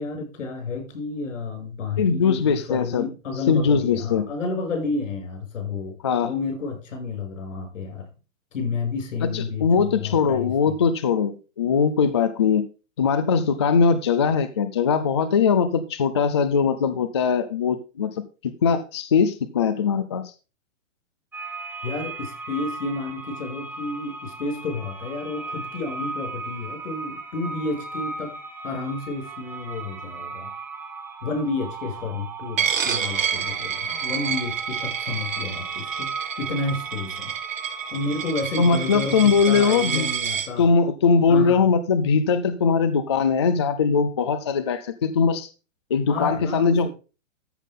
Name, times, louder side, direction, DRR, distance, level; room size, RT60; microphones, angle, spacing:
voice 1, 0.0-8.1 8.5-10.8 21.8-28.3 28.6-30.5 31.2-37.3 37.7-40.7 41.3-41.6 46.1-46.9, left 3 dB, 75° left, 3 dB, 6.7 m, -31 dB
voice 2, 2.0-3.1 3.5-4.2 6.0-6.3 9.2-12.7 13.0-18.1 18.4-20.2 38.6-40.1 40.6-45.5 45.9-46.9, left 5 dB, 25° left, 11 dB, 0.4 m, -21 dB
sound 1, 21.3-40.2, right 3 dB, 5° right, 1.5 m, -37 dB
Coin (dropping), 32.6-40.5, right 8 dB, 90° right, 2.3 m, -29 dB
14.0 x 5.8 x 3.6 m, 0.32 s
hypercardioid pair, 165°, 38 cm